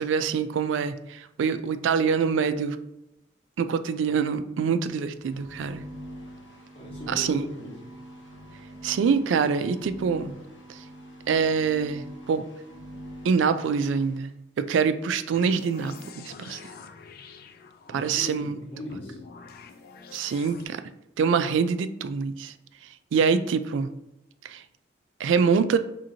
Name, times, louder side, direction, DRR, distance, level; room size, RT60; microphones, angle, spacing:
voice 1, 0.0-2.8 3.6-5.8 7.1-7.4 8.8-10.3 11.3-12.5 13.2-16.6 17.9-18.5 20.1-20.8 21.2-22.5 23.1-23.9 24.4-24.6 25.2-25.8, right 6 dB, 80° right, 12 dB, 0.3 m, -25 dB
sound 1, 5.1-14.2, equal, 70° left, 1.0 m, -44 dB
voice 2, 6.7-7.9 17.9-19.2, left 1 dB, 30° left, -4 dB, 1.4 m, -39 dB
sound 2, 15.3-18.2 18.9-20.7, left 4 dB, 55° left, 0.4 m, -46 dB
5.0 x 2.8 x 2.7 m, 0.89 s
head